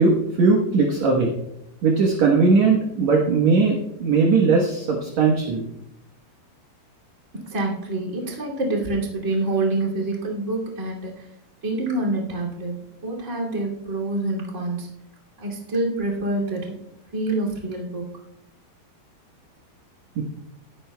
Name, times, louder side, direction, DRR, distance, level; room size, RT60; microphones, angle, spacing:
voice 1, 0.0-1.3 1.8-5.6 20.2-20.3, right 4 dB, 65° right, 0 dB, 1.9 m, -19 dB
voice 2, 7.5-11.1 11.6-14.9 15.4-16.7 17.1-18.0, right 2 dB, 25° right, -3 dB, 2.1 m, -26 dB
20.5 x 11.0 x 2.2 m, 0.85 s
omnidirectional pair, 4.7 m